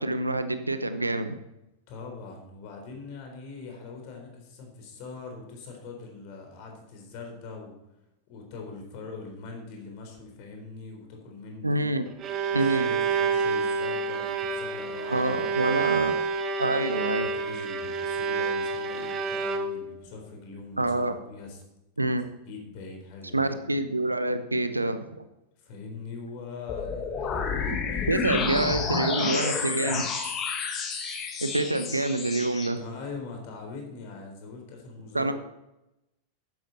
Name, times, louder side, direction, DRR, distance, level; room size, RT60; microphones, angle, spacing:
voice 1, 0.0-1.4 11.6-12.0 12.5-12.9 15.1-16.1 16.6-17.3 20.8-21.1 22.0-22.2 23.3-25.2 28.1-30.0 31.4-32.8 35.1-35.3, right 2 dB, 85° right, 10 dB, 0.9 m, -26 dB
voice 2, 1.9-7.8 8.3-12.0 12.5-16.1 17.1-21.6 22.5-23.7 25.6-30.1 32.7-35.3, left 4 dB, 45° left, 2 dB, 3.9 m, -42 dB
Bowed string instrument, 11.9-20.0, right 5 dB, 30° right, 1.4 m, -28 dB
sound 1, 26.7-32.7, left 5 dB, 30° left, 1.8 m, -30 dB
12.0 x 10.5 x 4.1 m, 0.91 s
figure-of-eight pair, 90°, 0 cm